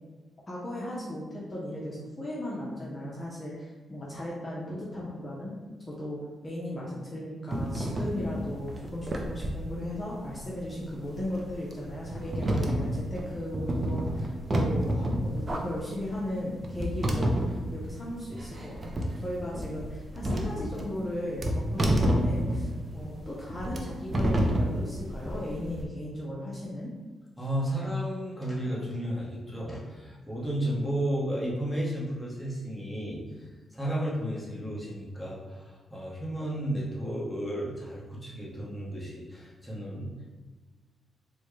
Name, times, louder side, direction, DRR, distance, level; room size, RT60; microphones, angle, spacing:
voice 1, 0.5-5.5 5.9-26.9, left 1 dB, 30° left, -5 dB, 0.8 m, -36 dB
sound 1, 7.5-25.8, right 1 dB, 35° right, 0.6 m, -30 dB
voice 2, 27.4-40.3, right 1 dB, 5° left, -6 dB, 1.2 m, -33 dB
4.1 x 2.3 x 3.2 m, 1.3 s
cardioid pair, 70°, 0 cm